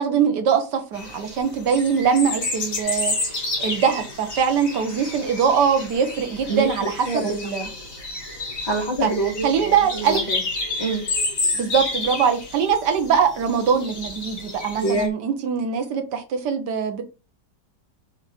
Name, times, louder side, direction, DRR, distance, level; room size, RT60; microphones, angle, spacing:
voice 1, 0.0-7.7 9.0-9.1 9.4-10.2 11.5-17.0, right 7 dB, 70° right, 1.6 m, -22 dB
sound 1, 0.9-15.1, left 2 dB, 50° left, 2.1 m, -30 dB
voice 2, 8.6-10.4 10.8-11.0 14.8-15.1, right 2 dB, 15° left, 1.6 m, -25 dB
5.5 x 3.5 x 5.0 m
omnidirectional pair, 1.9 m